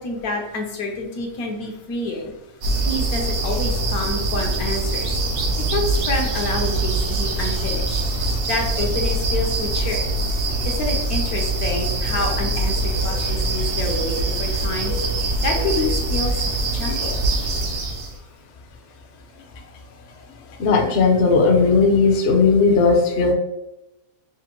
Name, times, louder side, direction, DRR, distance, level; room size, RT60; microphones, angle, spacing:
voice 1, 0.0-2.3 2.8-5.2 5.7-10.1 10.6-14.9 15.4-16.4 16.7-17.2, left 2 dB, 70° left, 1 dB, 1.3 m, -28 dB
sound 1, 2.6-18.2, right 2 dB, 60° right, 0.6 m, -23 dB
voice 2, 20.6-23.3, left 4 dB, 55° left, 1 dB, 0.8 m, -16 dB
6.1 x 2.1 x 2.9 m, 0.89 s
omnidirectional pair, 1.7 m